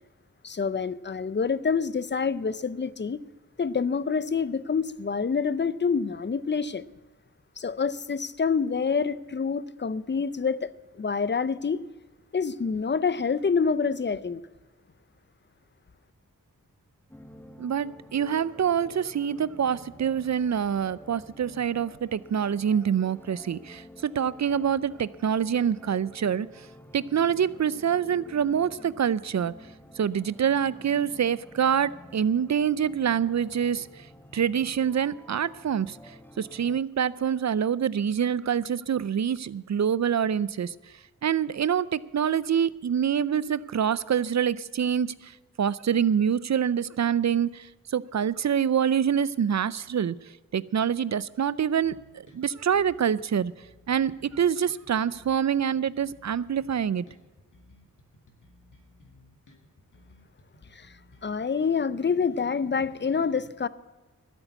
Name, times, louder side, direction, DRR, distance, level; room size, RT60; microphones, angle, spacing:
voice 1, 0.4-3.2 3.6-6.8 7.6-10.7 11.0-11.8 12.3-14.4 60.7-60.9 61.2-63.7, left 5 dB, 35° left, 17 dB, 0.5 m, -27 dB
sound 1, 17.1-36.8, equal, 5° left, 1.0 m, -50 dB
voice 2, 17.6-26.7 26.9-29.5 30.0-34.1 34.3-40.7 41.2-50.2 50.5-53.5 53.9-57.0, right 8 dB, 55° right, 19 dB, 0.5 m, -26 dB
sound 2, 51.8-61.4, left 2 dB, 65° left, 2.1 m, -57 dB
13.0 x 8.1 x 8.1 m, 1.2 s
cardioid pair, 55°, 34 cm